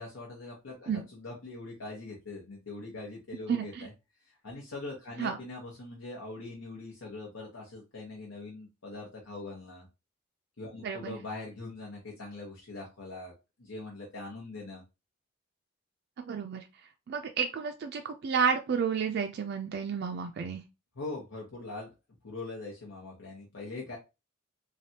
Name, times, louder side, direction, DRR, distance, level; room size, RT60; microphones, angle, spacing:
voice 1, 0.0-3.9 4.2-9.9 10.6-13.3 13.6-14.8 20.9-21.9 22.2-24.0, left 2 dB, 85° left, -3 dB, 0.9 m, -42 dB
voice 2, 3.5-3.9 5.2-5.4 10.8-11.2 16.2-16.6 17.1-20.6, right 6 dB, 55° right, 4 dB, 0.3 m, -31 dB
3.3 x 2.3 x 2.7 m, 0.26 s
head